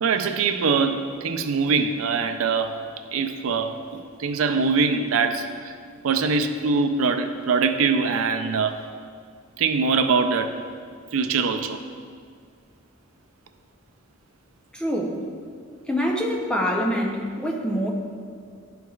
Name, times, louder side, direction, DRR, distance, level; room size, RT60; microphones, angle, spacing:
voice 1, 0.0-2.8 3.1-5.7 6.0-8.8 9.6-10.6 11.1-11.8, right 5 dB, 85° right, 7 dB, 0.4 m, -23 dB
voice 2, 14.7-15.2 15.9-17.9, equal, 5° left, -1 dB, 0.6 m, -25 dB
11.0 x 4.6 x 2.4 m, 2.1 s
head